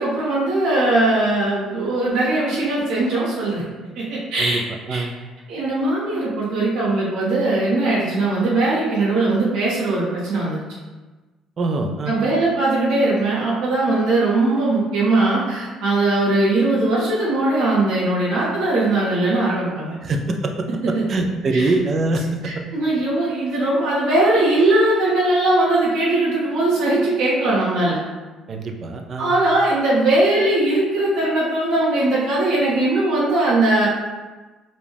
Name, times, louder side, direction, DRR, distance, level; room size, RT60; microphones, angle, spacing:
voice 1, 0.0-3.6 3.9-4.6 4.9-5.0 5.5-10.6 12.1-19.9 20.9-21.0 21.5-21.7 22.4-28.0 29.2-33.9, right 2 dB, 90° right, -7 dB, 1.2 m, -20 dB
voice 2, 11.6-12.2 20.0-20.7 21.1-22.6 28.5-29.3, right 2 dB, 30° right, 4 dB, 0.4 m, -23 dB
4.9 x 2.3 x 3.4 m, 1.3 s
cardioid pair, 165°, 0 cm